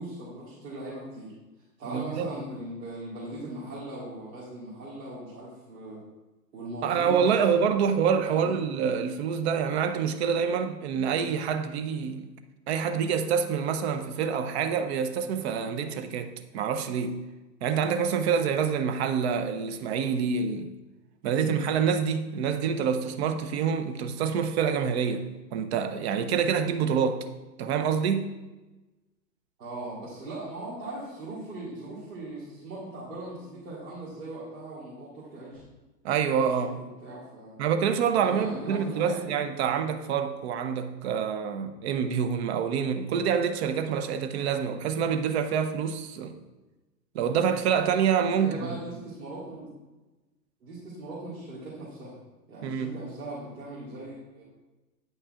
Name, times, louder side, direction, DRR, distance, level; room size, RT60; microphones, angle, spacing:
voice 1, 0.0-1.3 1.8-6.0 6.5-7.4 8.3-8.5 29.6-35.6 36.6-37.6 38.1-39.3 48.3-49.7 50.6-52.2 52.5-54.4, right 2 dB, 75° right, 2.0 m, -39 dB
voice 2, 1.8-2.3 6.8-12.3 12.7-17.2 17.6-20.7 21.2-27.3 27.6-28.3 36.0-36.8 37.6-46.4 47.1-48.5 52.6-53.0, right 7 dB, 40° right, 0.6 m, -27 dB
8.9 x 5.4 x 2.4 m
hypercardioid pair, 120°, 50 cm